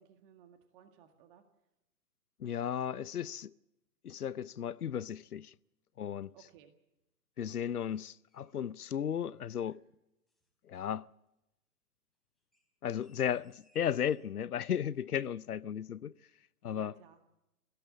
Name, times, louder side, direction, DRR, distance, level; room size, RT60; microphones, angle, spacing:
voice 1, 0.0-1.4 6.3-6.7 16.7-17.2, right 9 dB, 35° right, 2.0 m, -59 dB
voice 2, 2.4-3.5 4.0-5.5 6.0-6.3 7.4-9.8 10.7-11.1 12.8-16.1 16.6-17.0, left 9 dB, 80° left, 0.6 m, -35 dB
sound 1, 7.4-8.6 8.9-9.9 10.3-11.0 12.4-14.4 14.9-15.3, left 2 dB, ahead, 4.4 m, -71 dB
21.5 x 16.5 x 7.5 m
figure-of-eight pair, 120°, 44 cm